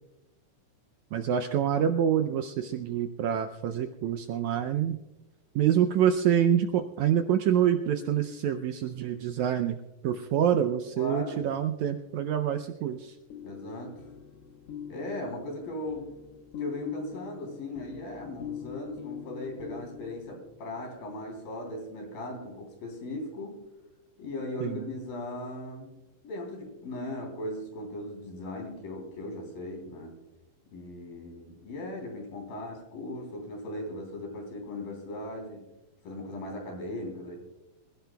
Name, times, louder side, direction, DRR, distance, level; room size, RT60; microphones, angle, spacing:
voice 1, 1.1-5.0 5.5-9.8 10.0-13.2 24.6-24.9, right 9 dB, 80° right, 7 dB, 1.7 m, -26 dB
voice 2, 11.0-11.4 13.4-14.1 14.9-16.2 16.6-23.6 24.2-26.0 26.2-30.2 30.7-35.6 36.0-37.4, left 1 dB, 85° left, 2 dB, 5.2 m, -38 dB
sound 1, 12.9-20.9, left 9 dB, 70° left, 1.4 m, -43 dB
25.5 x 16.0 x 2.3 m, 1.0 s
omnidirectional pair, 4.0 m